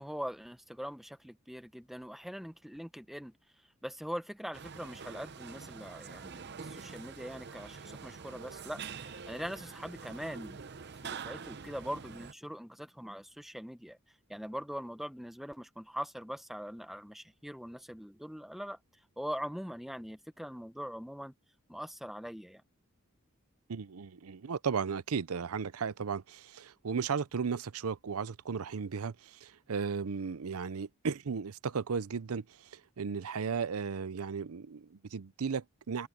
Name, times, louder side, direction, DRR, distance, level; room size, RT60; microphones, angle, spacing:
voice 1, 0.0-3.3 3.8-10.6 11.0-14.0 14.3-18.8 19.2-21.3 21.7-22.6, equal, ahead, 0.8 m, -42 dB
sound 1, 4.5-12.3, right 5 dB, 50° right, 0.7 m, -45 dB
voice 2, 23.7-36.1, right 6 dB, 90° right, 0.6 m, -35 dB
head